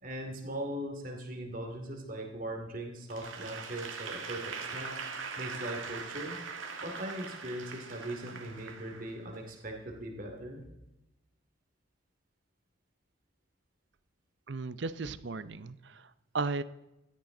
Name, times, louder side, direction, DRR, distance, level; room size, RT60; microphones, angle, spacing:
voice 1, 0.0-5.0 5.4-6.4 6.8-10.6, right 1 dB, 45° right, 3 dB, 2.6 m, -40 dB
Applause / Crowd, 3.1-9.5, right 5 dB, 75° right, 1.9 m, -41 dB
voice 2, 14.5-16.6, right 3 dB, 60° right, 15 dB, 0.6 m, -36 dB
16.5 x 13.0 x 3.9 m, 0.93 s
head